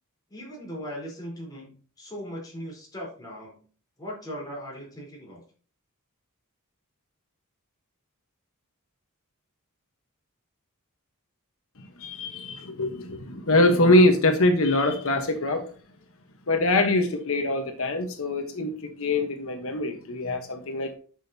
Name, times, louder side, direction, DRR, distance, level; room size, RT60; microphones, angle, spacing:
voice 1, 0.3-3.6 4.0-5.4, equal, 20° left, -3 dB, 4.1 m, -38 dB
voice 2, 11.8-15.6 16.5-21.0, left 1 dB, 65° left, 5 dB, 1.2 m, -23 dB
10.0 x 6.5 x 2.8 m, 0.41 s
head